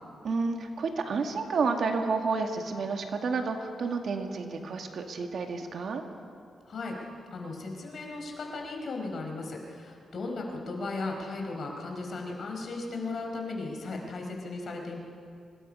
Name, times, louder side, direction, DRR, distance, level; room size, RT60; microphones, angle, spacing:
voice 1, 0.2-6.0, right 4 dB, 65° right, 4 dB, 2.0 m, -30 dB
voice 2, 7.3-15.0, left 3 dB, 60° left, 1 dB, 4.7 m, -36 dB
25.0 x 21.0 x 5.6 m, 2.4 s
cardioid pair, 85°, 0 cm